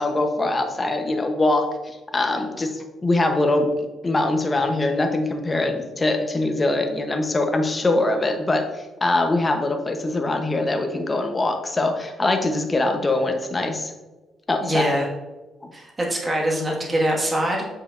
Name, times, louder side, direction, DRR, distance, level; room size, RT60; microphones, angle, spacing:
voice 1, 0.0-1.7 2.1-3.7 4.0-8.7 9.0-13.9 14.5-15.0, left 2 dB, 25° left, 5 dB, 0.9 m, -22 dB
voice 2, 14.6-15.0 15.7-17.7, right 1 dB, 25° right, -2 dB, 1.8 m, -23 dB
7.0 x 5.7 x 2.6 m, 1.1 s
cardioid pair, 90°, 0 cm